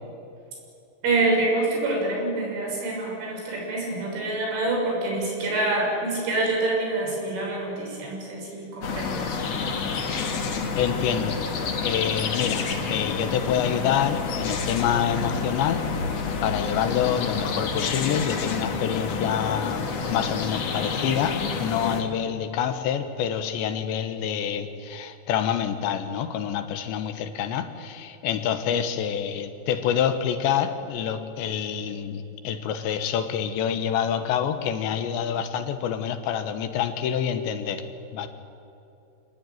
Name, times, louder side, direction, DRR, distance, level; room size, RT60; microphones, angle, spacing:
voice 1, 1.0-9.4, right 2 dB, 90° right, -1 dB, 8.8 m, -26 dB
sound 1, 8.8-22.0, left 5 dB, 50° left, 2.2 m, -29 dB
voice 2, 10.8-11.4 11.8-15.8 16.4-37.8 38.1-38.3, left 8 dB, 75° left, 9 dB, 3.4 m, -27 dB
27.0 x 19.0 x 9.4 m, 2.8 s
omnidirectional pair, 5.4 m